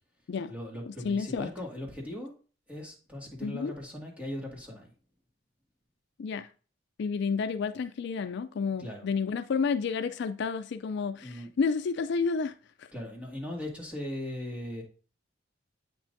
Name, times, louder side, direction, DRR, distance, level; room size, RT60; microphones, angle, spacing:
voice 1, 0.5-2.3 2.7-4.9 8.8-9.1 11.2-11.5 12.9-14.8, left 1 dB, 5° right, 2.0 m, -39 dB
voice 2, 1.0-1.5 3.4-3.7 6.2-6.5 7.0-12.5 12.8-12.9, left 5 dB, 60° left, 0.4 m, -30 dB
8.1 x 6.0 x 2.6 m
head